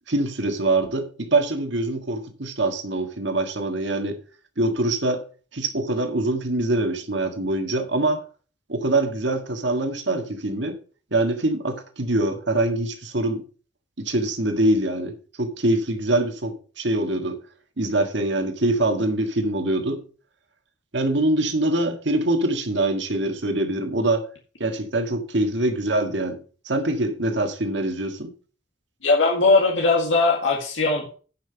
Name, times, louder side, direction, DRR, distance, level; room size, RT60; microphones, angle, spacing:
voice 1, 0.1-4.2 4.6-5.2 5.5-8.2 8.7-10.8 11.1-13.4 14.0-17.4 17.8-20.0 20.9-24.3 24.6-26.4 26.6-28.3, right 2 dB, 70° right, 1.8 m, -24 dB
voice 2, 29.0-31.2, left 3 dB, 90° left, 2.0 m, -19 dB
10.5 x 5.9 x 5.7 m
head